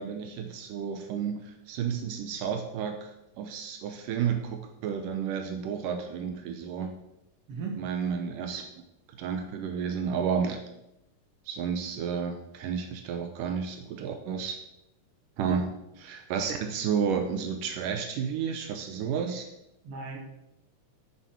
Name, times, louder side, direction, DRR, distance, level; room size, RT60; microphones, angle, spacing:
voice 1, 0.0-7.0 7.8-8.6 9.2-10.6 11.5-14.6 15.4-19.5, right 7 dB, 80° right, 6 dB, 2.4 m, -31 dB
voice 2, 7.5-7.8 15.4-15.6 19.8-20.2, right 4 dB, 50° right, 1 dB, 2.6 m, -36 dB
13.0 x 7.0 x 4.6 m, 0.85 s
omnidirectional pair, 3.8 m